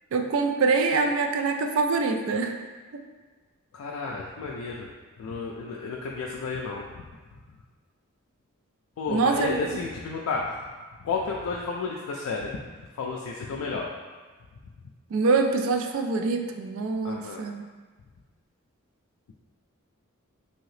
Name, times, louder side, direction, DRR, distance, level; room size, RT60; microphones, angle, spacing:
voice 1, 0.1-2.6 9.1-9.7 15.1-17.6, right 4 dB, 65° right, 4 dB, 0.3 m, -24 dB
voice 2, 3.7-4.9 5.2-6.9 9.0-10.5 11.0-12.5 13.0-13.9 17.0-17.4, left 4 dB, 85° left, -2 dB, 0.3 m, -32 dB
2.9 x 2.7 x 3.1 m, 1.4 s
head